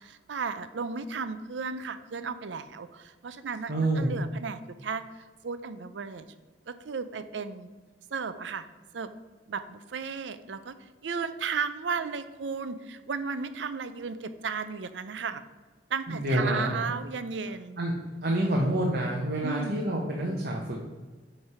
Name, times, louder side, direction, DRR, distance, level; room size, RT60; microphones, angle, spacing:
voice 1, 0.0-6.3 6.7-7.7 8.1-8.7 8.9-9.1 9.5-15.4 15.9-17.8 19.4-19.8, right 5 dB, 85° right, 12 dB, 0.5 m, -34 dB
voice 2, 3.7-4.1 16.1-16.9 17.8-17.9 18.2-20.8, right 1 dB, 60° right, -1 dB, 1.1 m, -27 dB
9.3 x 3.3 x 5.5 m, 1.3 s
head